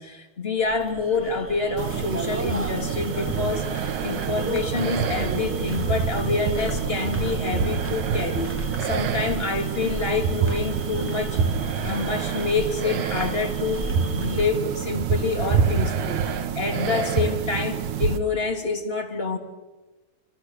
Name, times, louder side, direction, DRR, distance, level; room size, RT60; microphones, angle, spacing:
voice 1, 0.0-19.4, left 4 dB, 20° left, 5 dB, 2.2 m, -27 dB
sound 1, 0.6-14.4, right 2 dB, 5° right, 1.8 m, -35 dB
sound 2, 1.8-18.2, right 7 dB, 70° right, 2.7 m, -27 dB
29.0 x 26.5 x 6.4 m, 1.2 s
omnidirectional pair, 3.8 m